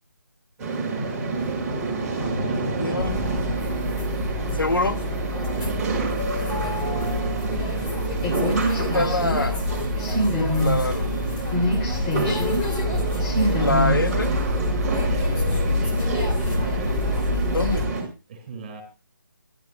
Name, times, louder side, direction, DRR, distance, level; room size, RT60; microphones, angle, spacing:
sound 1, 0.6-18.0, right 3 dB, 10° right, 4.7 m, -29 dB
voice 1, 2.2-3.2 5.6-7.5 14.9-16.0 16.3-17.3 18.3-18.8, right 4 dB, 30° right, 5.2 m, -38 dB
voice 2, 2.8-3.2 4.6-5.0 8.8-9.6 10.5-11.5 13.6-14.3 17.5-17.8, left 2 dB, 80° left, 1.3 m, -25 dB
sound 2, 3.0-17.9, left 1 dB, 15° left, 2.8 m, -25 dB
26.5 x 12.5 x 2.3 m
figure-of-eight pair, 155°, 11 cm